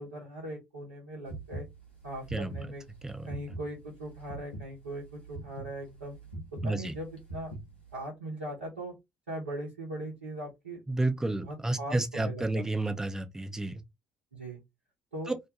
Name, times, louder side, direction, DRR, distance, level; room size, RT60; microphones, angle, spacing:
voice 1, 0.0-1.6 2.0-2.8 3.2-6.2 6.5-7.5 7.9-8.9 9.3-10.8 11.4-12.6 14.3-14.6 15.1-15.3, right 1 dB, 80° right, 0.8 m, -40 dB
sound 1, 1.3-8.0, right 2 dB, 90° left, 0.7 m, -42 dB
voice 2, 6.6-6.9 10.9-13.8 15.3-15.4, right 2 dB, 10° right, 0.6 m, -31 dB
2.4 x 2.2 x 2.8 m
figure-of-eight pair, 50°, 6 cm